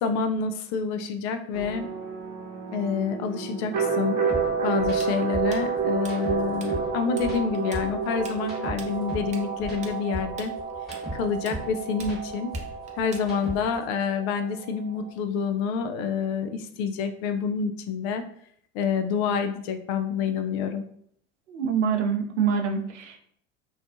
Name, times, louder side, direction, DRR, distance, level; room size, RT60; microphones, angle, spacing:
voice 1, 0.0-1.9 2.7-4.2 4.6-10.5 11.1-12.5 13.0-18.2 18.7-20.8, left 6 dB, 50° left, 8 dB, 0.4 m, -28 dB
sound 1, 1.5-15.1, right 5 dB, 50° right, 0.7 m, -30 dB
sound 2, 4.3-4.4 4.8-5.0 5.3-6.9 7.2-9.3 9.6-11.7 12.0-13.8, equal, ahead, 1.3 m, -37 dB
Tools, 5.0-6.7 7.0-7.3 7.5-13.6, right 4 dB, 20° right, 0.4 m, -44 dB
voice 2, 21.5-23.2, right 6 dB, 85° right, 4 dB, 0.5 m, -25 dB
2.4 x 2.3 x 2.5 m, 0.64 s
figure-of-eight pair, 75°, 34 cm